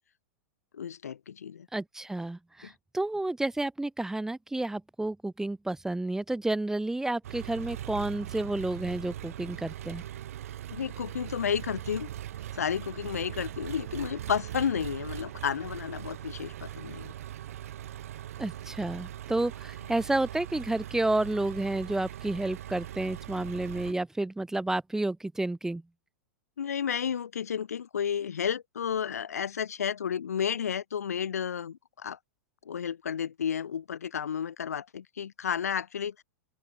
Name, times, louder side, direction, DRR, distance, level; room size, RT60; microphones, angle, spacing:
voice 1, 0.7-1.7 2.6-2.7 10.7-12.1 12.5-17.1 26.6-32.2 32.7-36.2, left 8 dB, 75° left, 2.5 m, -32 dB
voice 2, 1.7-10.0 18.4-25.8, right 2 dB, 5° right, 2.2 m, -31 dB
Engine, 7.2-23.9, right 12 dB, 65° right, 2.5 m, -41 dB
open air
figure-of-eight pair, 95°, 8 cm